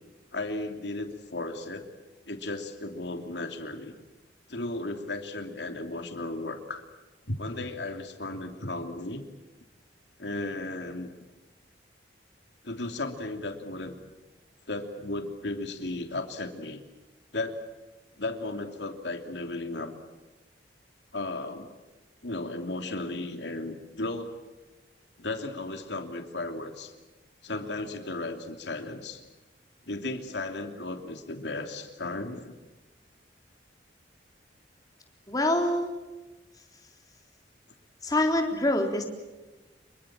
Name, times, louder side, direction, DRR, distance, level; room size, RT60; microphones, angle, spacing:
voice 1, 0.3-1.9 2.2-3.9 4.5-6.8 7.3-9.2 10.2-11.1 12.6-13.9 14.7-16.8 17.3-17.6 18.2-19.9 21.1-21.7 22.2-24.4 25.2-26.9 27.4-29.2 29.9-32.5, left 2 dB, 75° left, 6 dB, 3.0 m, -35 dB
voice 2, 35.3-35.9 38.0-39.0, left 1 dB, 20° left, 3 dB, 3.7 m, -25 dB
27.5 x 23.5 x 7.5 m, 1.1 s
head